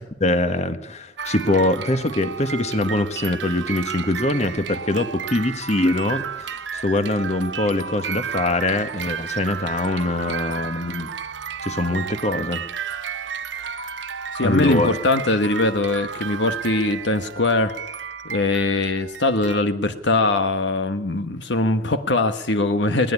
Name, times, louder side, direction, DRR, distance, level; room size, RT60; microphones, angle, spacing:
voice 1, 0.2-11.1 11.6-12.6 14.4-14.9, left 2 dB, 40° left, 9 dB, 1.5 m, -23 dB
sound 1, 1.2-19.6, right 7 dB, 75° right, 0.9 m, -32 dB
voice 2, 14.3-17.7 18.2-23.1, left 2 dB, 70° left, 9 dB, 1.3 m, -21 dB
21.0 x 18.5 x 9.7 m, 0.83 s
head